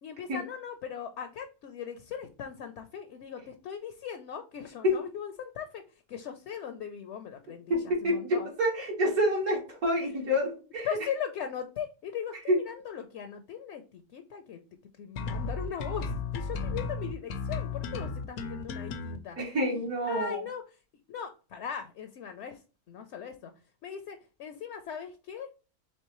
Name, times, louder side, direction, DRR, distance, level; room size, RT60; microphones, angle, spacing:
voice 1, 0.0-5.8 6.1-8.5 10.8-14.6 15.0-19.4 20.0-20.6 21.1-22.6 22.9-23.5 23.8-25.5, left 8 dB, 65° left, 7 dB, 0.8 m, -39 dB
voice 2, 7.7-10.9 12.5-12.6 19.4-20.4, equal, 75° right, -3 dB, 2.1 m, -27 dB
sound 1, 15.2-19.2, left 4 dB, 80° left, 1.1 m, -34 dB
4.4 x 3.4 x 3.0 m, 0.34 s
omnidirectional pair, 1.6 m